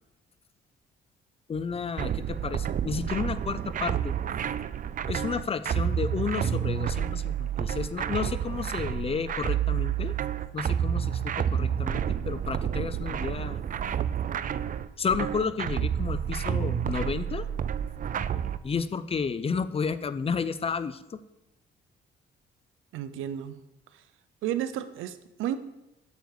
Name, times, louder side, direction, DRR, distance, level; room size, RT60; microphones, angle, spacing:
voice 1, 1.5-4.1 5.1-10.1 10.5-13.6 15.0-17.4 18.6-21.2, left 5 dB, 30° left, 14 dB, 0.5 m, -31 dB
sound 1, 2.0-18.6, right 9 dB, 45° right, 0.4 m, -29 dB
voice 2, 22.9-23.6 24.4-25.6, right 11 dB, 90° right, 12 dB, 0.6 m, -32 dB
8.0 x 6.8 x 4.8 m, 0.91 s
cardioid pair, 90°, 20 cm